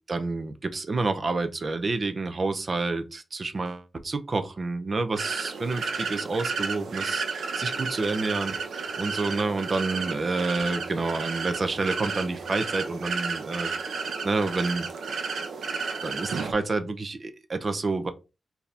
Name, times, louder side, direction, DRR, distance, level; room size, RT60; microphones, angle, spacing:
voice 1, 0.1-13.7 14.2-14.9 16.0-18.1, right 3 dB, 40° right, 0.6 m, -29 dB
sound 1, 5.2-16.5, right 5 dB, 90° right, 0.7 m, -32 dB
4.6 x 2.8 x 3.3 m
wide cardioid pair, 130°, 0 cm